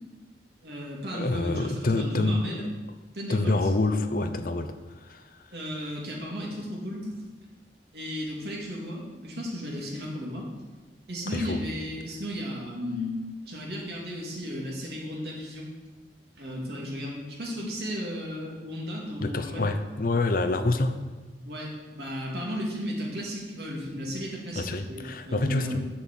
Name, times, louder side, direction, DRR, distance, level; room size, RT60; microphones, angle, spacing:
voice 1, 0.6-2.6 3.1-3.7 5.5-7.1 7.9-10.5 11.1-13.2 13.4-15.7 16.4-19.7 21.4-25.8, equal, 65° right, -2 dB, 2.4 m, -34 dB
voice 2, 1.1-2.4 3.3-5.5 11.3-11.7 19.2-21.0 24.6-25.8, left 2 dB, 50° left, 8 dB, 0.7 m, -27 dB
7.1 x 6.1 x 7.3 m, 1.3 s
head